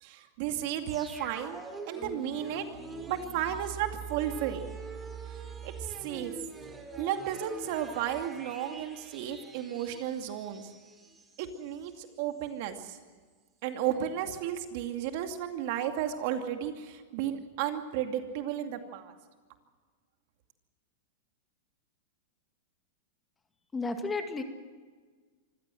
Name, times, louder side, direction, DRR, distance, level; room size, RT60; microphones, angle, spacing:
voice 1, 0.0-1.6 1.9-2.6 3.1-4.6 5.3-5.4 5.6-5.7 6.0-6.3 7.0-10.7 11.4-13.0 13.6-19.1, right 10 dB, 55° right, 6 dB, 2.5 m, -33 dB
sound 1, 0.9-11.7 12.0-12.1, right 4 dB, 15° right, 3.2 m, -44 dB
voice 2, 23.7-24.4, left 3 dB, 15° left, 6 dB, 2.1 m, -32 dB
25.5 x 16.0 x 7.8 m, 1.5 s
hypercardioid pair, 125°, 0 cm